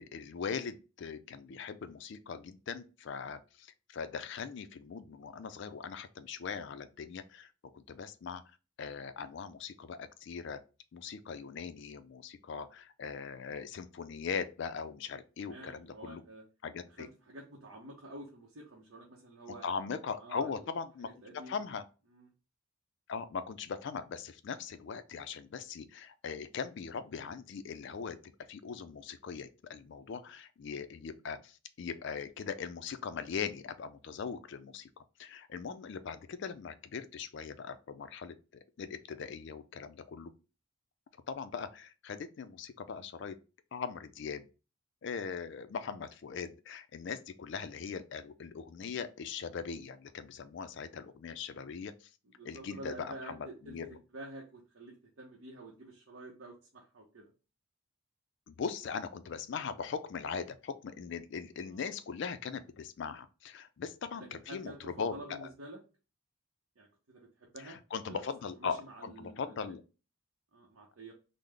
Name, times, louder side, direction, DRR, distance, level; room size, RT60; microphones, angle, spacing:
voice 1, 0.0-7.5 7.7-8.4 8.8-10.6 10.9-16.2 16.6-17.1 19.6-21.1 21.3-21.8 23.1-28.2 28.5-38.3 38.8-40.3 41.3-43.3 43.7-44.5 45.0-51.9 52.4-53.9 58.5-65.5 67.6-69.8, left 6 dB, 55° left, 0.3 m, -40 dB
voice 2, 15.4-16.4 16.9-19.7 20.2-20.6 21.0-21.6 22.1-22.3 52.2-57.3 61.7-61.9 64.1-65.8 66.8-67.8 68.1-68.2 68.6-69.7 70.5-71.1, right 1 dB, 65° right, 0.7 m, -49 dB
3.7 x 2.0 x 3.2 m
head